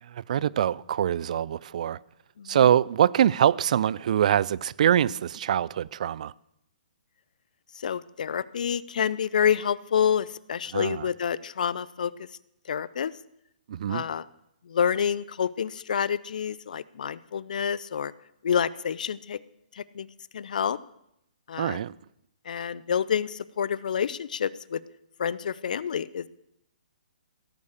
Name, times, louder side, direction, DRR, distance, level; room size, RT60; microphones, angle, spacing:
voice 1, 0.0-2.0 2.5-6.3 10.7-11.1 13.7-14.0 21.6-21.9, right 10 dB, 55° right, 0.4 m, -24 dB
voice 2, 2.4-2.8 7.7-12.3 12.7-13.1 13.9-14.2 14.6-18.1 18.4-19.4 19.7-20.1 20.3-20.8 21.5-21.8 22.5-24.8 25.2-26.3, left 8 dB, 65° left, 0.6 m, -28 dB
16.5 x 8.5 x 6.5 m
hypercardioid pair, 130°, 5 cm